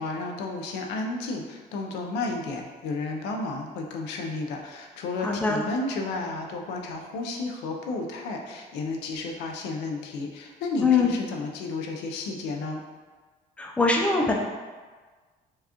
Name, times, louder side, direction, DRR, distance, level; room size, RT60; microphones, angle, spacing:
voice 1, 0.0-12.8, left 3 dB, 90° left, 1 dB, 0.5 m, -32 dB
voice 2, 5.2-5.6 10.8-11.1 13.6-14.3, left 4 dB, 5° left, -1 dB, 0.5 m, -22 dB
4.5 x 2.4 x 2.8 m, 1.4 s
cardioid pair, 110°, 17 cm